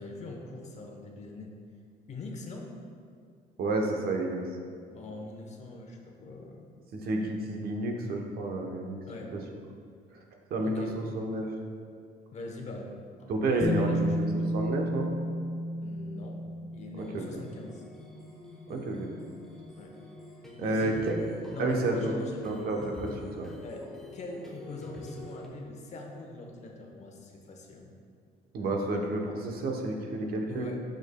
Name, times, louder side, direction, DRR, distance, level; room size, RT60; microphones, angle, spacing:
voice 1, 0.0-1.5 2.1-2.7 4.9-6.8 9.1-9.3 10.6-11.0 12.3-12.9 13.2-14.6 15.8-16.4 16.7-17.8 19.8-20.0 20.6-21.0 21.5-22.7 23.6-27.9 30.5-30.8, left 2 dB, 40° left, 1 dB, 1.0 m, -42 dB
voice 2, 3.6-4.4 7.0-9.0 9.3-9.4 10.5-11.5 13.3-14.2 14.5-15.1 17.0-17.4 18.7-19.1 20.6-21.2 21.6-22.1 22.4-23.5 28.5-30.7, right 2 dB, 65° right, 1 dB, 1.0 m, -30 dB
Bass guitar, 13.6-17.5 18.7-18.8, equal, 20° left, 0.4 m, -32 dB
sound 1, 17.0-25.5, left 1 dB, ahead, 0.9 m, -47 dB
8.1 x 6.3 x 2.2 m, 2.2 s
cardioid pair, 110°, 17 cm